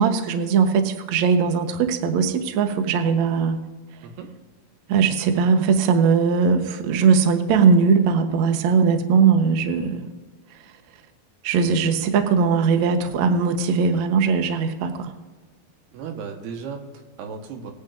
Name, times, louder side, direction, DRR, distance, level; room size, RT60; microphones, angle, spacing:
voice 1, 0.0-3.6 4.9-10.1 11.4-15.1, right 5 dB, 65° right, 6 dB, 1.8 m, -19 dB
voice 2, 15.9-17.7, right 6 dB, 85° right, 4 dB, 3.3 m, -35 dB
22.0 x 8.9 x 2.6 m, 1.3 s
omnidirectional pair, 4.6 m